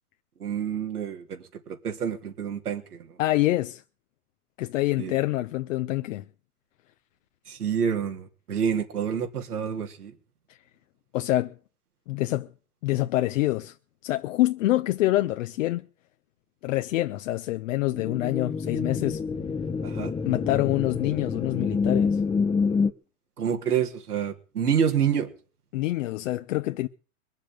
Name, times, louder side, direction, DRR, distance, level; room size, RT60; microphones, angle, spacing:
voice 1, 0.4-3.2 5.0-5.2 7.5-10.1 19.8-20.1 23.4-25.3, right 8 dB, 90° right, 3.7 m, -28 dB
voice 2, 3.2-3.8 4.6-6.3 11.1-11.5 12.1-12.5 12.8-13.7 14.0-15.9 16.6-19.2 20.3-22.2 25.7-26.9, left 16 dB, 60° left, 1.0 m, -26 dB
sound 1, 17.9-22.9, left 5 dB, 10° left, 1.0 m, -27 dB
21.0 x 7.3 x 9.1 m
hypercardioid pair, 120°, 44 cm